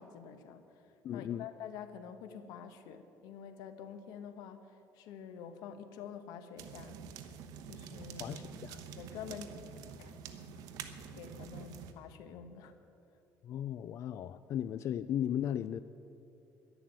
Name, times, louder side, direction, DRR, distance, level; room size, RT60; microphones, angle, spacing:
voice 1, 0.0-7.0 7.7-8.4 9.0-9.6 10.0-10.4 11.1-12.7, left 8 dB, 90° left, 9 dB, 1.2 m, -48 dB
voice 2, 1.0-1.5 8.2-8.8 13.4-15.8, left 10 dB, 50° left, 13 dB, 0.4 m, -36 dB
sound 1, 6.6-11.9, right 7 dB, 80° right, 1.1 m, -47 dB
11.0 x 11.0 x 9.0 m, 2.7 s
cardioid pair, 145°, 6 cm